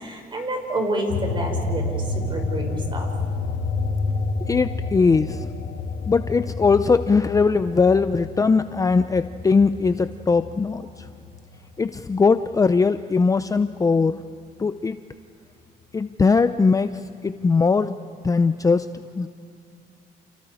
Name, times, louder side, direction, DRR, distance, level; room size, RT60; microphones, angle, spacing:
voice 1, 0.0-3.1, right 1 dB, 30° right, 2 dB, 6.5 m, -28 dB
sound 1, 1.1-12.0 12.4-13.8, left 3 dB, 65° left, 3.7 m, -29 dB
voice 2, 4.5-5.4 6.1-10.9 11.8-14.2 14.6-15.0 15.9-16.9 17.2-18.0 18.2-18.9 19.2-19.3, left 4 dB, 20° left, 11 dB, 0.6 m, -20 dB
29.5 x 29.5 x 5.0 m, 2.3 s
cardioid pair, 110°, 17 cm